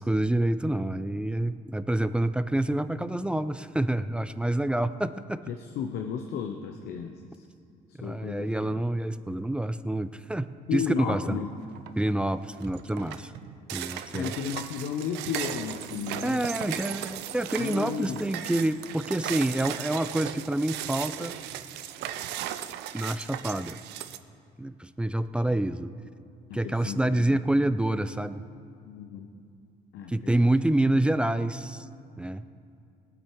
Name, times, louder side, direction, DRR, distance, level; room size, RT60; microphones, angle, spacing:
voice 1, 0.0-5.4 8.0-11.4 12.0-13.3 13.7-14.3 16.2-21.3 22.9-23.8 24.6-25.9 26.5-28.4 30.1-31.9 32.2-32.4, right 1 dB, 5° right, 13 dB, 0.3 m, -27 dB
voice 2, 5.5-7.5 7.9-8.8 10.7-11.5 14.1-16.8 17.6-18.3 26.5-27.3 28.9-29.3 29.9-30.4, left 7 dB, 75° left, 5 dB, 0.8 m, -34 dB
sound 1, 11.7-12.1 12.5-24.2, right 12 dB, 85° right, 0.6 m, -37 dB
19.0 x 8.1 x 4.6 m, 2.5 s
cardioid pair, 110°, 17 cm